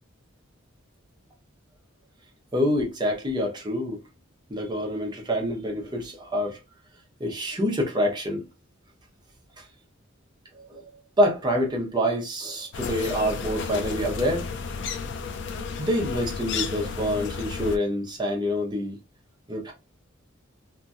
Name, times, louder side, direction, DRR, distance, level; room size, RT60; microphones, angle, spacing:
voice 1, 2.5-4.0 4.5-6.6 7.2-8.4 9.6-9.7 10.5-10.9 11.2-14.5 15.8-19.0 19.5-19.7, equal, 20° right, 0.8 m, -26 dB
sound 1, 12.7-17.8, left 5 dB, 60° left, 0.3 m, -32 dB
2.8 x 2.6 x 2.3 m
head